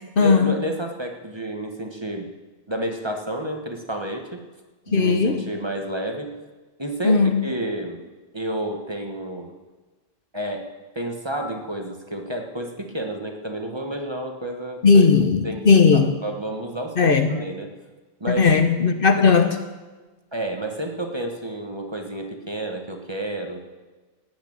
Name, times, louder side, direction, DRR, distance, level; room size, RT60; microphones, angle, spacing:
voice 1, 0.2-2.3 2.7-4.4 4.9-6.3 6.8-8.0 8.3-9.5 10.3-10.7 10.9-15.0 15.4-17.7 18.2-18.5 19.2-19.3 20.3-23.6, right 1 dB, 25° right, 3 dB, 1.3 m, -30 dB
voice 2, 4.9-5.4 7.0-7.4 14.8-16.1 17.0-17.3 18.4-19.5, left 5 dB, 55° left, 8 dB, 1.1 m, -16 dB
17.0 x 6.5 x 8.7 m, 1.3 s
omnidirectional pair, 1.2 m